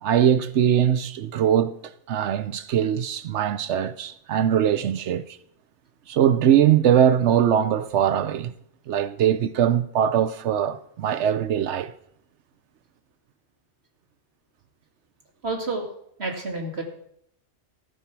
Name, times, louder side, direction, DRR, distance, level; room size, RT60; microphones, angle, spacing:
voice 1, 0.0-1.8 2.1-5.4 6.1-8.5 8.9-11.9, right 9 dB, 90° right, 1.0 m, -21 dB
voice 2, 15.4-15.9 16.2-16.8, right 3 dB, 65° right, 2.5 m, -29 dB
14.0 x 9.3 x 5.9 m
omnidirectional pair, 1.1 m